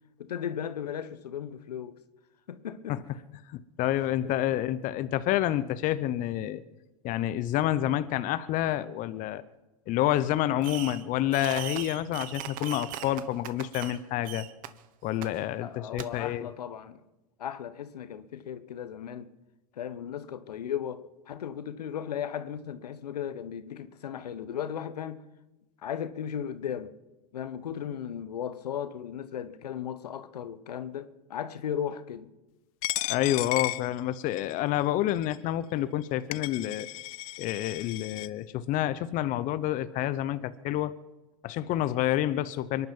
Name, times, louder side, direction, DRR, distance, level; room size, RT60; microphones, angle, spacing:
voice 1, 0.2-2.0 2.5-3.0 4.2-4.6 15.6-17.0 17.4-19.3 19.7-25.2 25.8-26.9 27.3-32.3, left 9 dB, 85° left, 1.2 m, -36 dB
voice 2, 3.5-6.6 7.0-9.4 9.9-14.5 15.0-16.5 33.1-36.9 37.4-41.0 41.4-42.9, left 13 dB, 40° left, 0.8 m, -28 dB
Fireworks, 10.6-11.1 11.3-14.0 14.2-14.7 15.2-15.3 16.0-16.1, right 12 dB, 45° right, 1.2 m, -39 dB
Coin (dropping), 32.8-34.6 35.2-35.4 36.0-36.1 36.3-38.3, left 19 dB, 60° left, 0.5 m, -34 dB
23.5 x 11.0 x 5.4 m
hypercardioid pair, 105°, 20 cm